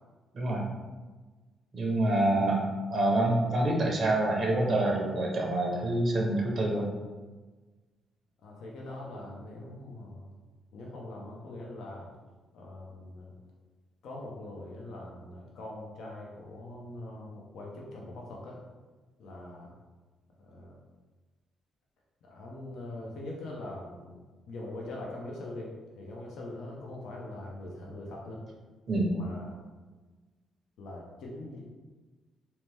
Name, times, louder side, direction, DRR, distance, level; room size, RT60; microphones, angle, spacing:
voice 1, 1.7-2.6 2.9-6.9 28.9-29.1, right 1 dB, 50° right, 0 dB, 0.6 m, -26 dB
voice 2, 8.4-10.3 10.7-12.1 12.5-13.3 14.0-18.6 19.2-19.7 20.4-20.8 22.2-24.2 24.5-28.4 29.1-29.6 30.8-31.7, left 1 dB, 75° left, -2 dB, 0.5 m, -42 dB
2.7 x 2.1 x 3.2 m, 1.3 s
cardioid pair, 90°, 0 cm